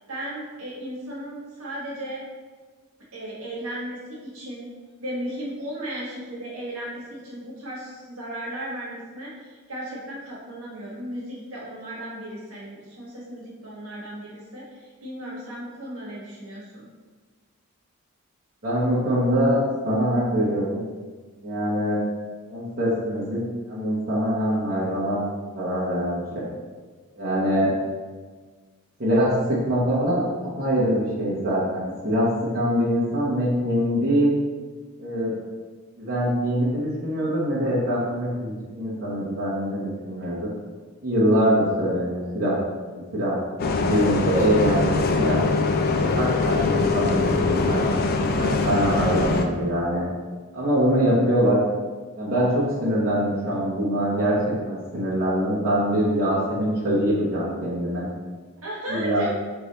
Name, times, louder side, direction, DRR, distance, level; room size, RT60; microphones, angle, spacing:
voice 1, 0.1-2.2 3.1-4.7 5.0-16.9 58.6-59.3, right 1 dB, 75° right, -6 dB, 1.4 m, -35 dB
voice 2, 18.6-20.8 21.4-22.0 22.5-23.4 23.7-25.2 25.5-26.2 27.2-27.7 29.0-32.3 32.5-34.3 35.0-35.3 36.0-40.5 41.0-42.6 42.9-43.4 43.7-45.4 45.7-47.8 48.4-50.1 50.5-51.6 52.1-58.1 58.9-59.2, equal, 45° right, -9 dB, 1.1 m, -23 dB
Bus, 43.6-49.5, left 3 dB, 45° left, 0.3 m, -23 dB
3.5 x 3.3 x 4.1 m, 1.4 s
head